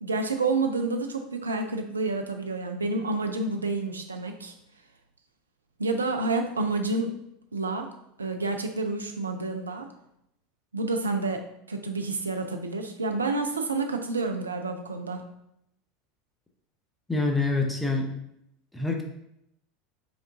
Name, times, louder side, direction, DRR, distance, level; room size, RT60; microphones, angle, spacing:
voice 1, 0.0-4.5 5.8-7.2 7.5-7.9 8.2-9.9 10.7-15.2, right 3 dB, 80° right, 5 dB, 0.4 m, -29 dB
voice 2, 17.1-18.1 18.7-19.0, left 3 dB, 10° left, 2 dB, 0.8 m, -26 dB
4.9 x 2.5 x 3.4 m, 0.79 s
figure-of-eight pair, 80°, 0 cm